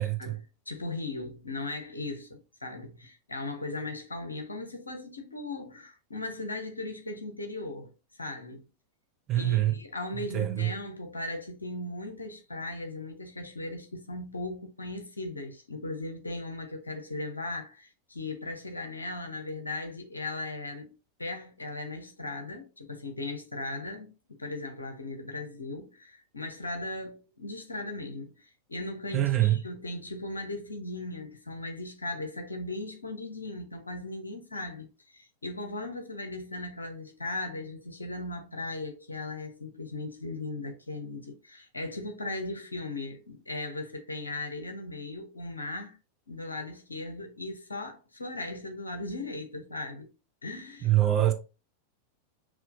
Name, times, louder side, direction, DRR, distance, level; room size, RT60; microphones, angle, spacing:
voice 1, 0.0-8.7 9.3-20.9 21.2-46.0 46.3-50.1 50.4-50.9, left 2 dB, 80° left, 0.9 m, -38 dB
voice 2, 9.3-9.7 10.3-10.7 29.1-29.6 50.8-51.3, right 13 dB, 30° right, 1.0 m, -24 dB
6.1 x 3.0 x 2.5 m
figure-of-eight pair, 90°, 0 cm